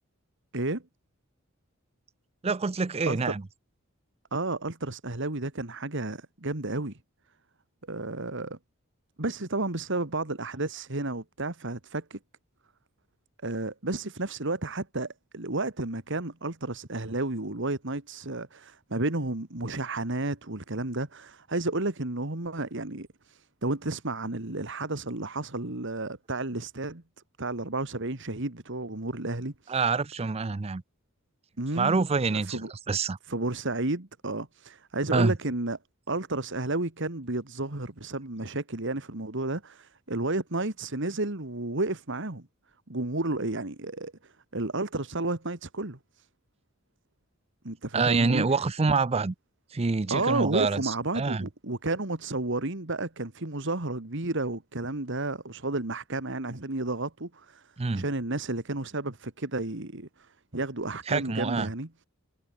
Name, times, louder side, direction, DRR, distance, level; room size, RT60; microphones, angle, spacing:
voice 1, 2.4-3.4 29.7-30.8 31.7-32.6 32.9-33.2 35.1-35.3 47.9-49.3 49.7-51.5 57.8-58.0 61.1-61.7, right 4 dB, 30° right, 0.5 m, -26 dB
voice 2, 4.3-7.0 7.9-8.6 9.2-12.2 13.4-27.0 27.4-29.8 31.6-32.0 32.3-32.7 33.3-35.8 36.1-42.5 42.9-46.3 47.6-48.5 50.1-61.9, right 2 dB, 60° right, 2.3 m, -32 dB
head